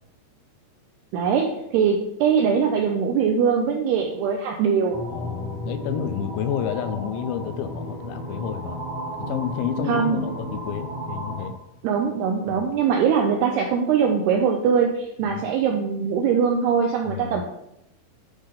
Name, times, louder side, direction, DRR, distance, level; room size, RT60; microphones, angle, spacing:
voice 1, 1.1-5.0 9.9-10.2 11.8-17.5, right 6 dB, 80° right, 2 dB, 2.3 m, -22 dB
sound 1, 4.9-11.5, equal, 40° right, 1.8 m, -33 dB
voice 2, 5.1-8.8 9.3-11.5 15.2-15.4 17.0-17.4, left 8 dB, 80° left, 9 dB, 2.8 m, -30 dB
10.5 x 3.7 x 6.6 m, 0.83 s
omnidirectional pair, 5.5 m